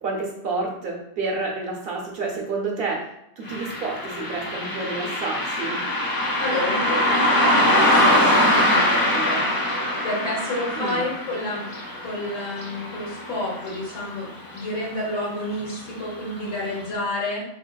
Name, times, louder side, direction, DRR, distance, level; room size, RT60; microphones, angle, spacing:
voice 1, 0.0-5.8 10.8-11.0, right 3 dB, 60° right, -1 dB, 0.8 m, -29 dB
Car passing by, 3.4-14.3 14.6-14.7 15.6-15.8 16.2-16.3 16.8-16.9, left 1 dB, 35° left, 0.3 m, -23 dB
voice 2, 6.4-11.7 12.0-14.3 14.5-17.4, left 1 dB, 65° left, -3 dB, 1.2 m, -30 dB
4.1 x 2.8 x 2.2 m, 0.80 s
omnidirectional pair, 1.3 m